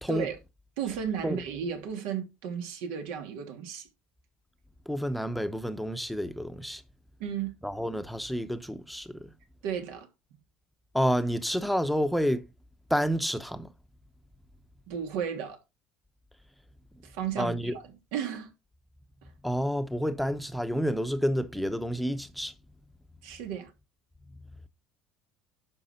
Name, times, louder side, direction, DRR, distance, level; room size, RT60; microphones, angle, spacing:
voice 1, 0.8-3.9 7.2-7.5 9.6-10.1 14.9-15.6 17.0-18.5 23.2-23.7, right 7 dB, 85° right, 3.1 m, -34 dB
voice 2, 4.9-6.8 7.6-9.3 10.9-12.5 12.9-13.7 17.4-17.7 19.4-22.5, equal, ahead, 0.8 m, -29 dB
11.0 x 6.1 x 4.3 m
cardioid pair, 150°, 4 cm